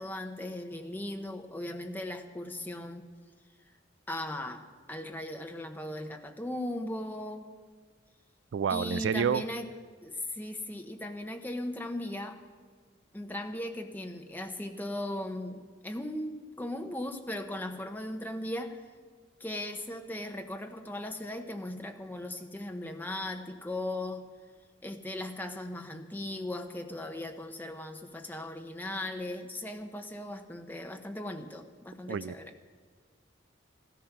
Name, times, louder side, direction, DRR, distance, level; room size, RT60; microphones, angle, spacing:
voice 1, 0.0-3.1 4.1-7.5 8.7-9.7 10.0-12.4 13.1-18.8 19.4-24.3 24.8-32.5, left 1 dB, 10° left, 5 dB, 1.0 m, -38 dB
voice 2, 8.5-9.4 32.1-32.4, right 7 dB, 65° right, 18 dB, 0.3 m, -29 dB
15.5 x 13.5 x 6.0 m, 1.5 s
head